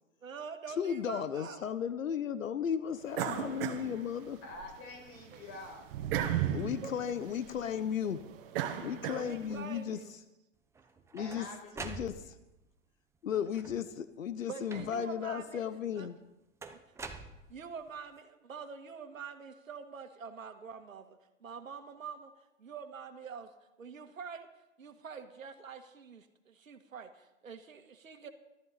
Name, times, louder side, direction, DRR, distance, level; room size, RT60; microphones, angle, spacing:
voice 1, 0.2-1.7 5.3-5.4 6.1-6.6 6.8-6.9 7.3-7.4 9.1-10.1 14.5-15.6 15.9-16.1 16.7-17.1 17.5-22.3 22.6-23.5 23.8-24.5 24.8-28.3, right 6 dB, 90° right, 7 dB, 1.8 m, -45 dB
voice 2, 0.8-4.4 6.5-8.2 8.8-10.0 11.1-11.5 11.8-12.3 13.2-16.2, left 8 dB, 85° left, 13 dB, 1.1 m, -35 dB
sound 1, 3.1-4.7 5.1-9.7, right 10 dB, 45° right, 1.7 m, -36 dB
voice 3, 4.4-5.9 11.2-12.3, left 2 dB, 35° left, 1 dB, 5.4 m, -47 dB
sound 2, 10.7-12.6 13.4-14.0 14.7-15.2 16.6-17.9, right 4 dB, 5° right, 0.7 m, -46 dB
17.5 x 13.0 x 4.2 m, 0.97 s
hypercardioid pair, 130°, 39 cm